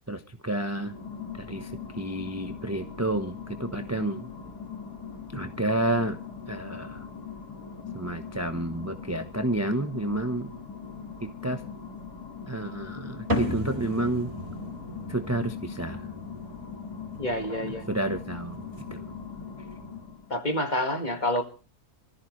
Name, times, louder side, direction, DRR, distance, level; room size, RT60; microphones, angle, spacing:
voice 1, 0.1-0.9 1.3-4.3 5.3-6.2 6.5-7.1 7.9-10.5 11.2-11.6 12.5-14.3 15.1-16.1 17.6-19.0, right 1 dB, 10° right, 7 dB, 0.9 m, -30 dB
sound 1, 0.7-20.4, left 6 dB, 90° left, 2.9 m, -41 dB
sound 2, 13.3-20.0, left 1 dB, 35° right, 3.8 m, -36 dB
voice 2, 17.2-17.9 20.3-21.4, left 1 dB, 30° left, 6 dB, 2.0 m, -28 dB
25.5 x 14.5 x 3.2 m, 0.35 s
omnidirectional pair, 1.7 m